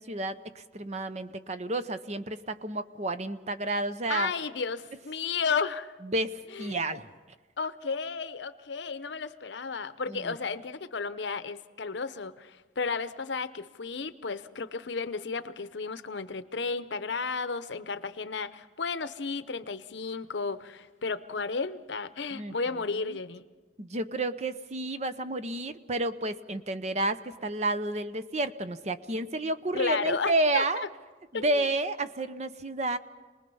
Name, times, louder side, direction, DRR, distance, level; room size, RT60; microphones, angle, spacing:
voice 1, 0.0-4.3 6.0-7.1 10.1-10.3 22.3-22.5 23.1-23.2 23.8-30.8 31.3-33.0, right 2 dB, 40° right, 11 dB, 0.7 m, -31 dB
voice 2, 4.1-5.9 6.5-6.9 7.6-23.4 29.7-30.6 31.3-31.7, left 4 dB, 80° left, 13 dB, 0.8 m, -33 dB
27.5 x 20.0 x 5.5 m, 1.3 s
head